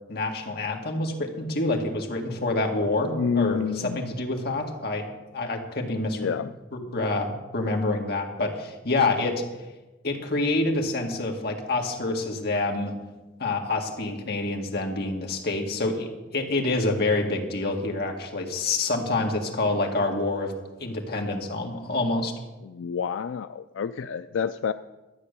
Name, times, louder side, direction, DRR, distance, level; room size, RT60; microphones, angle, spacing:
voice 1, 0.1-6.3 6.7-9.4 10.0-12.9 13.4-20.5 20.8-22.3, left 2 dB, 55° left, 2 dB, 1.9 m, -27 dB
voice 2, 3.1-4.0 6.2-6.5 22.6-24.7, left 6 dB, 85° left, 11 dB, 0.4 m, -28 dB
13.0 x 8.6 x 6.8 m, 1.1 s
head